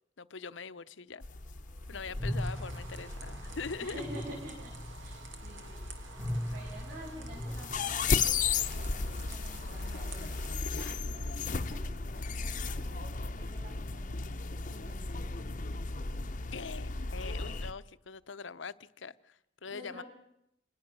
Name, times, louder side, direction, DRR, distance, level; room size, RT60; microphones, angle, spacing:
voice 1, 0.2-1.2 1.9-4.0 16.5-20.0, left 5 dB, 75° left, 0.8 m, -42 dB
sound 1, 1.2-17.7, left 4 dB, 40° left, 0.8 m, -36 dB
sound 2, 2.1-8.4, equal, 15° right, 1.7 m, -41 dB
sound 3, 2.3-10.6, right 5 dB, 80° right, 2.6 m, -51 dB
voice 2, 3.8-6.1 6.5-14.2 14.6-15.4 19.6-20.0, equal, 60° right, 7.4 m, -49 dB
27.0 x 19.5 x 6.9 m
head